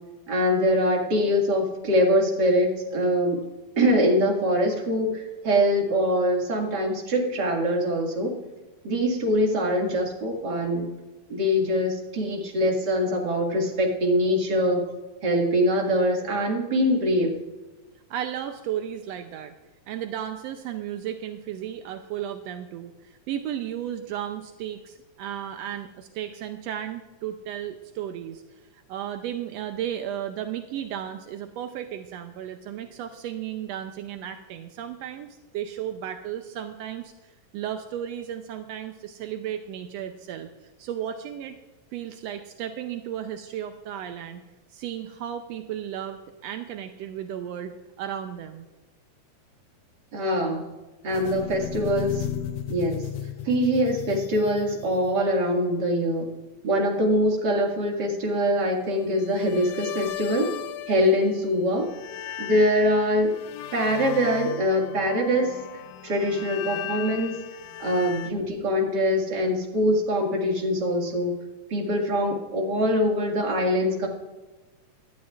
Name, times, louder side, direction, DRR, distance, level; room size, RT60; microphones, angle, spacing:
voice 1, 0.3-3.4 3.8-8.3 8.8-10.9 11.3-14.8 15.2-17.3 50.1-50.6 51.0-52.3 52.7-53.0 53.4-56.3 56.6-60.5 60.9-61.9 62.4-63.3 63.7-65.6 66.0-67.4 67.8-71.3 71.7-74.1, equal, 35° right, 0 dB, 2.3 m, -23 dB
voice 2, 18.1-19.5 19.9-41.6 41.9-44.4 44.7-48.6, right 10 dB, 80° right, 7 dB, 1.5 m, -34 dB
sound 1, 51.1-55.3 59.1-61.5 61.8-68.3, left 11 dB, 80° left, 1.6 m, -36 dB
19.0 x 12.0 x 2.4 m, 1.2 s
omnidirectional pair, 3.5 m